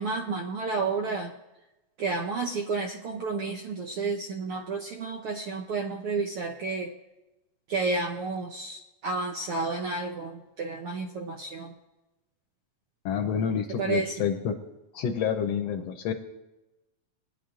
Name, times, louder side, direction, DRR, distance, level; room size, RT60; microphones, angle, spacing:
voice 1, 0.0-1.3 2.0-6.9 7.7-11.7 13.8-14.1, right 4 dB, 75° right, 2 dB, 1.3 m, -31 dB
voice 2, 13.0-14.5 14.9-16.1, left 7 dB, 70° left, 5 dB, 1.7 m, -28 dB
21.0 x 9.9 x 2.5 m, 0.98 s
omnidirectional pair, 3.3 m